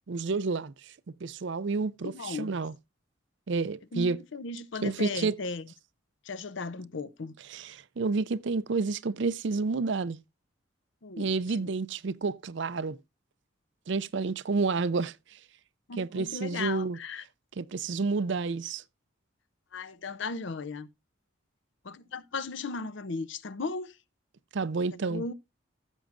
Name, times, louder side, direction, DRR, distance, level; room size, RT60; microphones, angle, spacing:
voice 1, 0.1-0.9 1.2-2.7 3.5-4.2 4.8-5.3 7.5-10.2 11.2-13.0 13.9-15.4 16.0-17.0 17.6-18.8 24.5-25.2, right 4 dB, 60° right, 0.5 m, -30 dB
voice 2, 2.0-2.6 3.9-5.7 6.2-7.3 11.0-11.3 15.9-17.2 19.7-20.9 21.8-24.0 24.9-25.3, left 4 dB, 65° left, 0.6 m, -36 dB
15.5 x 7.1 x 2.5 m
head